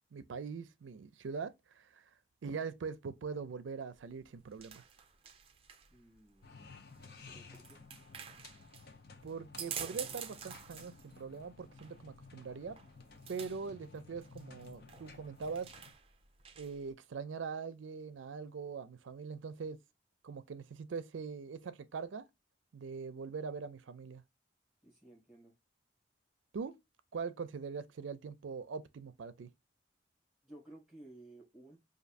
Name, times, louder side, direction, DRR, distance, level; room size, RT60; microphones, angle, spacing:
voice 1, 0.1-2.0 2.4-4.8 9.2-12.8 13.3-15.7 16.6-19.8 20.2-22.3 22.7-24.2 26.5-26.7 27.1-29.5, right 5 dB, 85° right, 0.4 m, -42 dB
sound 1, 3.9-16.9, right 8 dB, 30° right, 0.4 m, -49 dB
voice 2, 5.9-6.5 7.2-7.8 24.8-25.5 30.4-31.8, right 1 dB, 5° right, 1.8 m, -56 dB
sound 2, 6.4-15.9, left 4 dB, 55° left, 0.7 m, -55 dB
5.1 x 2.6 x 2.5 m
head